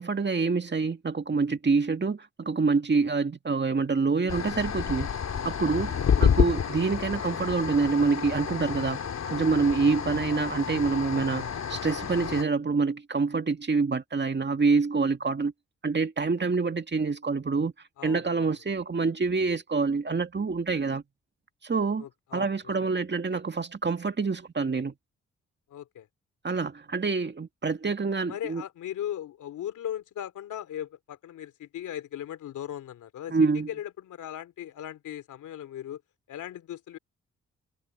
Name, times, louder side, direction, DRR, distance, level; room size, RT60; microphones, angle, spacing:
voice 1, 0.0-5.1 5.4-5.9 6.2-9.0 9.3-15.5 15.8-17.7 18.0-21.0 21.6-22.1 22.3-24.9 26.4-28.6 33.3-33.7, right 4 dB, 35° right, 2.3 m, -26 dB
sound 1, 4.3-12.4, left 7 dB, 60° left, 3.1 m, -29 dB
voice 2, 18.0-18.6 22.0-23.0 25.7-26.1 28.3-33.4 33.7-36.0 36.3-37.0, left 11 dB, 75° left, 2.9 m, -38 dB
supercardioid pair, 50°, 30 cm